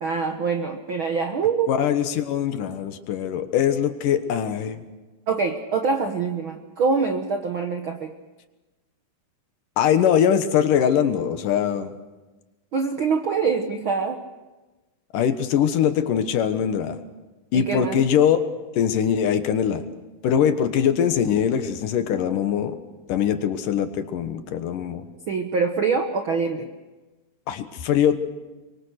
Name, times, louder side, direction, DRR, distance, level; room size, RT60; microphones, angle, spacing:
voice 1, 0.0-1.7 5.3-8.1 12.7-14.2 17.5-18.0 25.3-26.7, right 5 dB, 70° right, 5 dB, 1.2 m, -24 dB
voice 2, 1.7-4.8 9.8-11.9 15.1-17.0 17.5-18.4 18.8-19.8 20.2-22.7 23.1-25.0 27.5-28.2, left 8 dB, 70° left, 9 dB, 2.8 m, -22 dB
24.5 x 23.0 x 6.6 m, 1.2 s
omnidirectional pair, 4.1 m